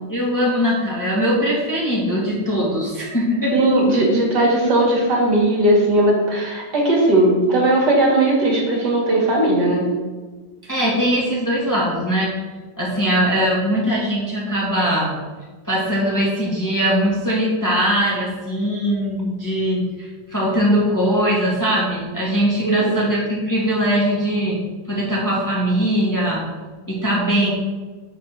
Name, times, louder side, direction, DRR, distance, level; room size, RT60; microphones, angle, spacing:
voice 1, 0.1-3.5 10.6-12.3 12.8-15.1 15.6-24.6 24.9-26.4 26.9-27.5, equal, 10° left, -6 dB, 1.7 m, -21 dB
voice 2, 3.5-9.9 22.6-23.0, right 1 dB, 65° right, -3 dB, 2.4 m, -17 dB
6.9 x 4.3 x 6.4 m, 1.3 s
omnidirectional pair, 2.0 m